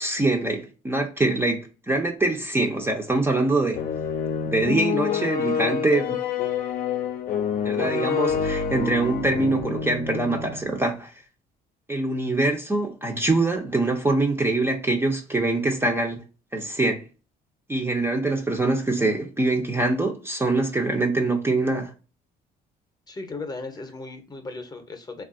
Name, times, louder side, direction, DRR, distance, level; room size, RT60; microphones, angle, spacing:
voice 1, 0.0-3.9 4.5-6.2 7.6-11.1 11.9-16.2 16.5-17.0 17.7-21.9, right 2 dB, 15° right, 0.5 m, -24 dB
sound 1, 3.7-10.7, left 7 dB, 60° left, 0.6 m, -27 dB
voice 2, 23.1-25.2, left 3 dB, 25° left, 0.7 m, -36 dB
3.4 x 2.3 x 2.5 m
cardioid pair, 110°, 17 cm